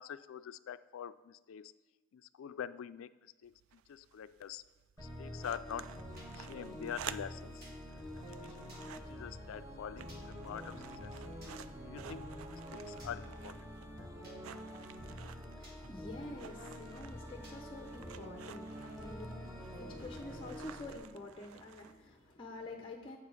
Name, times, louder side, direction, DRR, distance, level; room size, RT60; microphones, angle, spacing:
voice 1, 0.0-1.7 2.1-4.6 5.0-5.9 6.3-7.6 7.9-11.1 11.8-14.2, left 8 dB, 80° left, 15 dB, 0.3 m, -46 dB
sound 1, 3.4-22.3, right 9 dB, 85° right, 0.3 m, -53 dB
sound 2, 5.0-21.0, equal, 20° right, 1.1 m, -47 dB
sound 3, 6.2-6.3 7.6-7.8 8.7-8.8 10.1-10.2 11.4-11.6 13.0-13.1 14.2-14.4 15.6-15.8 17.4-17.6, right 1 dB, 50° right, 1.7 m, -56 dB
voice 2, 15.4-23.2, left 2 dB, 25° left, 2 dB, 0.6 m, -48 dB
8.1 x 5.0 x 5.4 m, 1.2 s
head